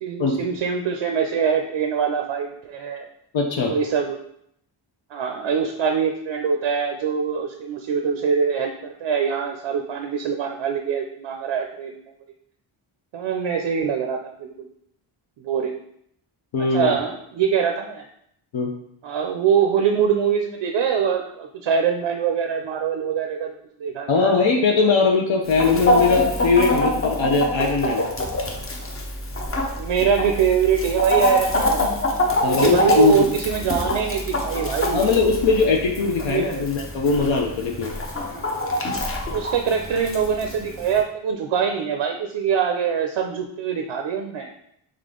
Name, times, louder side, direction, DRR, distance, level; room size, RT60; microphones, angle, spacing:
voice 1, 0.0-3.1 3.6-4.2 5.1-12.1 13.1-14.7 15.4-15.8 16.7-18.0 19.0-23.5 23.8-24.4 29.8-31.9 32.4-35.1 36.3-36.6 38.3-38.5 39.3-44.5, right 7 dB, 70° right, 3 dB, 0.5 m, -23 dB
voice 2, 3.3-3.7 16.5-16.9 18.5-18.7 24.1-28.1 32.4-33.3 34.9-37.9, left 4 dB, 65° left, 0 dB, 0.7 m, -20 dB
Chicken rooster, 25.5-41.0, left 1 dB, 30° left, 0.6 m, -25 dB
3.7 x 3.3 x 3.7 m, 0.73 s
wide cardioid pair, 115°, 50 cm